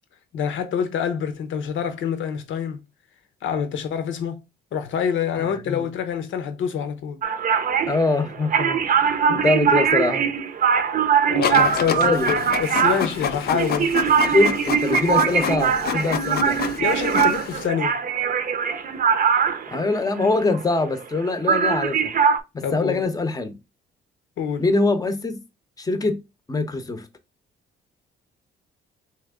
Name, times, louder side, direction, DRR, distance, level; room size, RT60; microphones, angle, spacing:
voice 1, 0.3-2.8 3.4-4.4 4.7-7.2 11.3-13.9 16.8-18.0 22.6-23.0 24.4-24.6, left 7 dB, 75° left, 0.8 m, -26 dB
voice 2, 5.4-5.9 7.9-10.3 11.9-12.3 14.2-16.6 19.7-22.1 22.5-23.5 24.6-25.4 25.8-26.2 26.5-27.1, left 3 dB, 20° left, 0.7 m, -23 dB
sound 1, 7.2-21.2 21.5-22.4, right 7 dB, 45° right, 0.6 m, -21 dB
Printer, 11.4-17.7, left 8 dB, 50° left, 0.5 m, -29 dB
3.4 x 3.1 x 3.6 m
cardioid pair, 90°, 20 cm